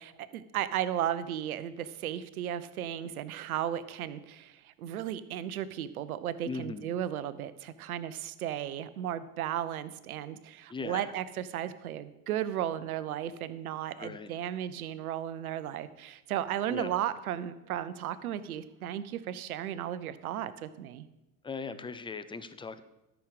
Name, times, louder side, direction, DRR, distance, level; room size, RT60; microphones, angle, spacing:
voice 1, 0.0-21.1, right 11 dB, 75° right, 15 dB, 0.8 m, -35 dB
voice 2, 6.4-6.9 10.7-11.1 14.0-14.3 16.7-16.9 21.4-22.8, left 4 dB, 10° left, 13 dB, 0.5 m, -39 dB
13.0 x 6.3 x 4.9 m, 0.97 s
hypercardioid pair, 75°, 43 cm